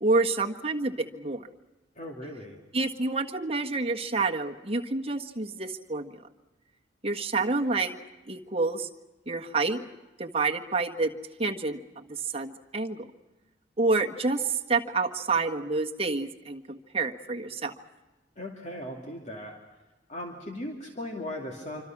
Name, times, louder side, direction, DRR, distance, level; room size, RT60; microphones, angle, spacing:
voice 1, 0.0-1.5 2.7-6.2 7.0-8.0 8.3-8.9 9.3-9.8 10.2-11.1 11.4-13.1 13.8-17.7, right 3 dB, 30° right, 2 dB, 1.5 m, -28 dB
voice 2, 2.0-2.6 18.4-19.5 20.1-21.8, left 1 dB, 40° left, 1 dB, 2.6 m, -38 dB
26.5 x 25.5 x 6.0 m, 1.1 s
head